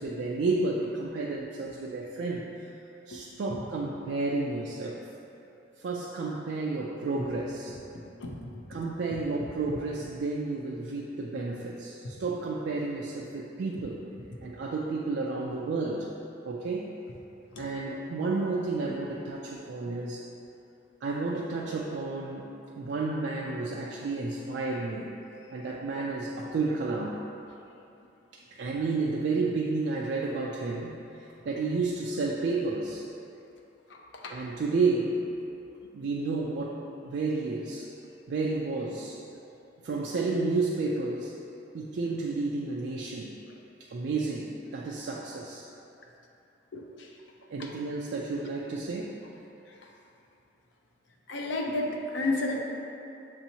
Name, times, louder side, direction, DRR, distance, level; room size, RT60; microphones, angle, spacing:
voice 1, 0.0-2.7 3.1-5.0 5.8-7.8 8.7-14.0 14.4-16.1 16.4-16.9 17.6-20.2 21.0-22.5 22.7-25.1 25.5-27.2 28.3-33.1 34.3-35.2 35.9-37.9 38.3-39.2 39.8-41.3 41.7-43.3 43.8-45.7 47.5-49.1, right 3 dB, 70° right, -3 dB, 0.3 m, -31 dB
voice 2, 8.2-8.5 9.7-9.8 17.5-17.7 33.9-34.3 46.7-47.1 47.6-47.7 49.7-49.8 51.3-52.6, left 2 dB, 80° left, 0 dB, 0.5 m, -32 dB
6.7 x 2.8 x 2.8 m, 2.9 s
head